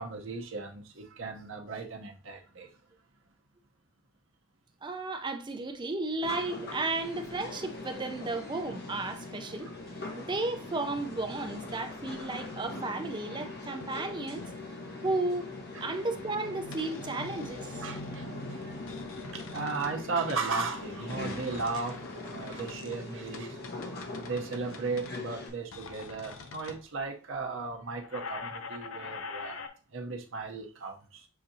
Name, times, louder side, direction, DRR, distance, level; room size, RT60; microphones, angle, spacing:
voice 1, 0.0-2.7 9.6-9.8 15.7-15.9 17.8-18.7 19.3-23.6 24.2-29.6 29.9-31.3, right 4 dB, 70° right, 0.8 m, -36 dB
voice 2, 4.8-9.7 10.1-14.5 15.0-15.5 15.8-17.7, right 2 dB, 25° right, 0.5 m, -34 dB
sound 1, 6.2-25.5, left 2 dB, 55° left, 1.0 m, -41 dB
sound 2, 12.0-13.0 13.3-13.6 13.8-14.7 15.0-15.5 16.7-18.2 18.6-20.0 20.3-26.8 28.0-29.7, left 4 dB, 90° left, 0.6 m, -45 dB
6.7 x 2.7 x 2.7 m
head